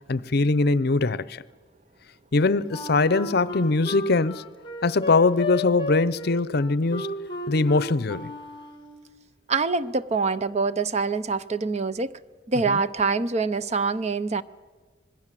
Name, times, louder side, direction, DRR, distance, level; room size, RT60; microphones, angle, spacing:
voice 1, 0.1-1.4 2.3-4.4 4.8-7.2 7.5-8.3 12.7-12.8, left 3 dB, 60° left, 0.7 m, -22 dB
Wind instrument woodwind instrument, 2.7-9.0, left 2 dB, 25° left, 2.1 m, -34 dB
voice 2, 9.5-12.1 12.5-14.4, right 4 dB, 35° right, 0.6 m, -25 dB
25.5 x 20.5 x 7.5 m
head